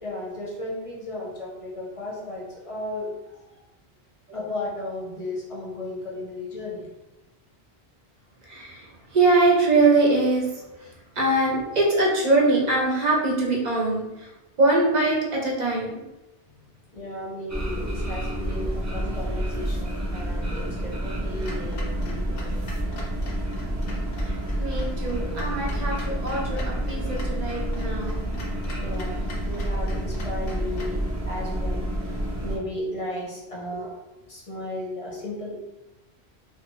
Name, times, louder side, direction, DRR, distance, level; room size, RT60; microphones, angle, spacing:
voice 1, 0.0-3.4 4.3-6.9 16.9-22.7 28.8-31.0 31.3-33.9 34.2-35.6, left 1 dB, 40° left, -4 dB, 0.7 m, -35 dB
voice 2, 8.4-14.3 14.6-16.0 24.2-28.3, right 2 dB, 45° right, -3 dB, 0.8 m, -23 dB
sound 1, 17.5-32.6, right 1 dB, 30° right, 0.3 m, -29 dB
Clock, 21.4-31.0, left 2 dB, 80° left, 0.9 m, -44 dB
2.5 x 2.3 x 3.0 m, 0.98 s
omnidirectional pair, 1.1 m